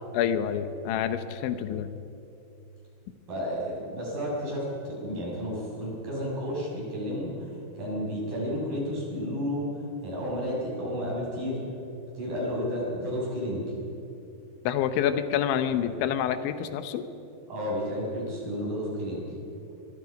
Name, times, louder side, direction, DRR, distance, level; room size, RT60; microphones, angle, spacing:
voice 1, 0.1-1.9 14.6-17.0, left 9 dB, 90° left, 10 dB, 3.4 m, -27 dB
voice 2, 3.3-9.7 10.0-11.6 12.1-13.7 17.5-19.2, equal, 45° right, -4 dB, 8.1 m, -32 dB
24.0 x 23.5 x 5.2 m, 2.8 s
omnidirectional pair, 5.2 m